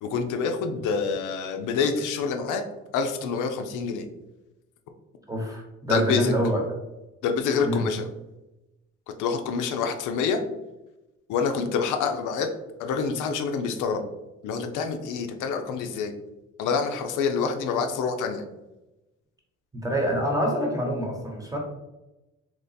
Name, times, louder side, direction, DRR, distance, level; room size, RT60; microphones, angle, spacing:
voice 1, 0.0-2.6 2.9-4.1 5.9-6.3 7.2-8.1 9.2-10.4 11.3-12.5 12.8-14.0 14.4-16.1 16.6-18.4, left 5 dB, 85° left, 6 dB, 0.5 m, -27 dB
voice 2, 5.3-6.6 7.6-7.8 19.7-21.6, equal, 10° right, 0 dB, 0.9 m, -26 dB
2.9 x 2.2 x 4.0 m, 0.99 s
cardioid pair, 90°, 30 cm